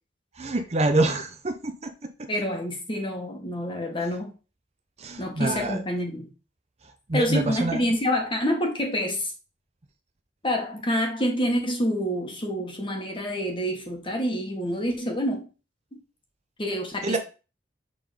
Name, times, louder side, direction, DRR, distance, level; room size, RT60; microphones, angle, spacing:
voice 1, 0.4-2.3 5.0-5.8 7.1-7.8 17.0-17.2, right 2 dB, 35° right, 6 dB, 0.7 m, -26 dB
voice 2, 2.3-4.3 5.2-6.3 7.1-9.3 10.4-15.5 16.6-17.2, equal, 25° left, 2 dB, 1.6 m, -27 dB
6.8 x 3.9 x 5.1 m, 0.33 s
head